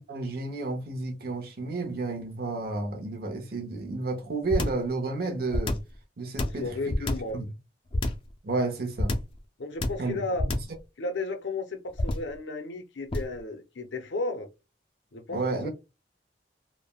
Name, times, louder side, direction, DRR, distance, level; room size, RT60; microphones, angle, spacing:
voice 1, 0.1-5.8 6.2-6.9 7.3-7.5 8.4-9.2 10.0-10.3 15.3-15.7, right 3 dB, 55° right, 0.7 m, -31 dB
sound 1, 4.5-4.9 5.5-6.0 6.4-7.4 7.9-8.3 9.0-9.4 9.8-10.1 10.4-10.8 12.0-12.4 13.1-13.4, left 1 dB, 30° left, 0.4 m, -28 dB
voice 2, 6.4-7.4 9.6-10.5 11.0-14.5 15.1-15.7, left 3 dB, 85° left, 0.6 m, -34 dB
3.3 x 2.1 x 2.2 m
head